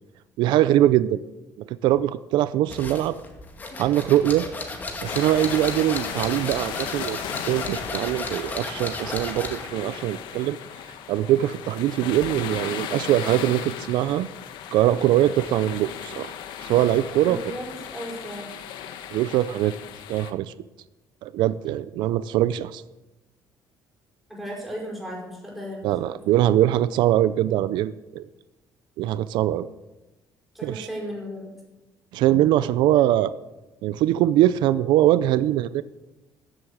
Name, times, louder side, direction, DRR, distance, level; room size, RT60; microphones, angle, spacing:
voice 1, 0.4-1.2 1.6-3.2 3.8-4.5 5.0-7.2 7.4-10.6 11.1-14.3 14.7-16.3 16.6-17.4 19.1-19.7 20.1-20.5 21.2-22.8 25.8-28.2 29.0-29.7 30.6-30.9 32.1-33.3 33.8-35.8, right 13 dB, 85° right, 15 dB, 0.5 m, -22 dB
sound 1, 2.7-9.7, left 3 dB, 25° left, 2.0 m, -34 dB
sound 2, 5.0-20.3, left 9 dB, 80° left, 1.3 m, -36 dB
voice 2, 17.2-18.5 24.3-25.9 30.5-31.5, equal, ahead, -4 dB, 5.4 m, -35 dB
14.0 x 7.9 x 8.6 m, 1.0 s
cardioid pair, 155°, 8 cm